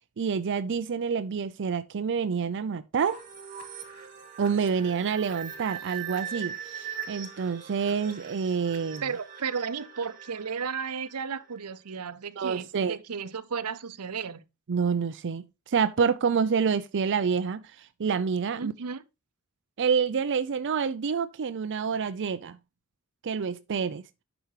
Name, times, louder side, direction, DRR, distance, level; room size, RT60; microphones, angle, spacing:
voice 1, 0.2-3.2 4.4-9.0 12.4-13.0 14.7-18.7 19.8-22.6 23.2-24.1, right 6 dB, 55° right, 0.5 m, -28 dB
sound 1, 3.0-11.6, right 8 dB, 40° right, 2.2 m, -41 dB
voice 2, 9.0-14.4 18.6-19.0, right 6 dB, 85° right, 0.7 m, -34 dB
10.0 x 6.0 x 3.2 m
head